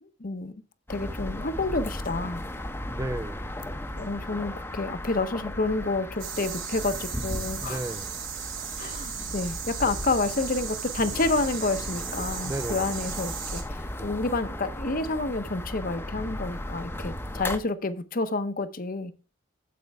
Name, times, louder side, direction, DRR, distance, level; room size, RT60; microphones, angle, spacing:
voice 1, 0.2-0.5 0.9-2.4 3.9-7.8 8.8-19.1, left 3 dB, 45° left, 0.8 m, -29 dB
sound 1, 0.9-17.6, left 1 dB, 10° left, 0.7 m, -36 dB
voice 2, 2.9-3.5 7.6-8.2 12.4-12.9, right 1 dB, 15° right, 0.4 m, -34 dB
sound 2, 6.2-13.6, right 8 dB, 80° right, 2.9 m, -36 dB
9.4 x 7.8 x 3.5 m
head